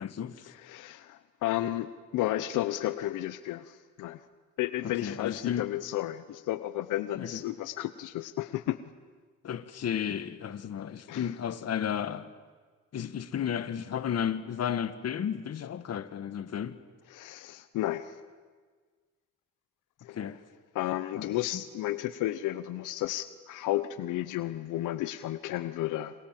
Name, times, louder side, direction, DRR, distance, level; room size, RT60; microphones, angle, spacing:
voice 1, 0.0-0.5 4.8-5.7 7.1-7.4 9.4-12.3 12.9-16.8 20.1-20.4 21.2-21.6, left 8 dB, 55° left, 1.6 m, -33 dB
voice 2, 0.6-4.2 4.6-8.8 11.1-11.3 17.1-18.2 20.0-20.2 20.7-26.1, left 14 dB, 90° left, 0.9 m, -32 dB
28.5 x 26.0 x 7.6 m
cardioid pair, 90°, 30 cm